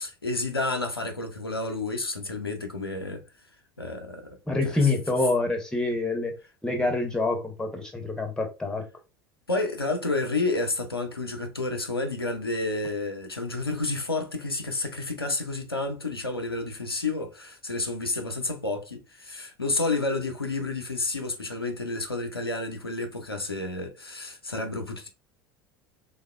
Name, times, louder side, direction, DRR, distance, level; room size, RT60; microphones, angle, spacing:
voice 1, 0.0-3.2 3.8-4.4 4.6-4.9 9.5-25.1, left 3 dB, 90° left, 0.4 m, -30 dB
voice 2, 4.5-6.3 6.6-8.9, left 3 dB, 5° left, 0.7 m, -26 dB
3.3 x 2.0 x 2.2 m
figure-of-eight pair, 75°, 12 cm